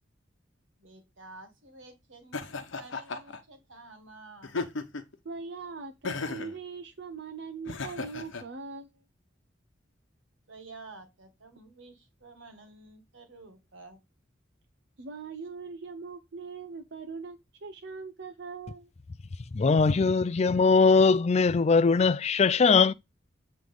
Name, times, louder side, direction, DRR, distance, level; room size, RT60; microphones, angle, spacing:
voice 1, 0.8-4.6 10.5-14.0, right 3 dB, 85° right, 1.7 m, -50 dB
Laughter, 2.3-3.4 4.4-5.2 6.0-6.6 7.7-8.4, left 3 dB, 80° left, 1.0 m, -35 dB
voice 2, 5.2-8.9 15.0-18.9, right 4 dB, 65° right, 0.7 m, -41 dB
voice 3, 19.5-22.9, left 4 dB, 35° left, 0.4 m, -21 dB
7.7 x 3.2 x 5.3 m
head